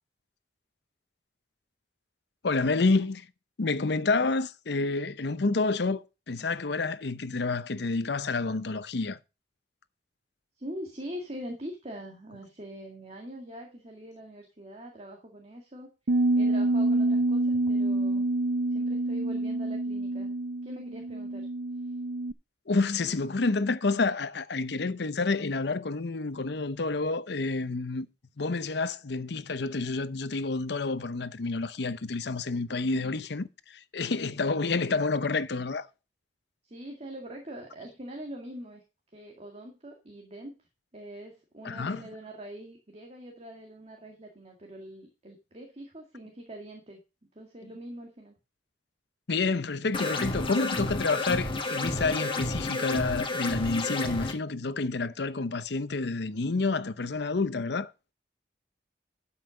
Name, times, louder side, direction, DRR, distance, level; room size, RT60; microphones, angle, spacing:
voice 1, 2.4-3.3 3.6-9.2 22.7-28.1 28.4-35.9 41.6-42.0 49.3-57.9, left 3 dB, 65° left, 0.8 m, -29 dB
voice 2, 10.6-15.9 16.4-18.3 18.7-20.3 20.6-21.5 21.8-21.9 32.9-33.1 36.6-38.8 39.1-47.0 47.3-48.4, equal, 35° right, 2.0 m, -43 dB
Bass guitar, 16.1-22.3, right 2 dB, 65° right, 0.6 m, -27 dB
sound 1, 49.9-54.3, left 2 dB, 30° left, 1.5 m, -31 dB
12.5 x 5.8 x 5.0 m
head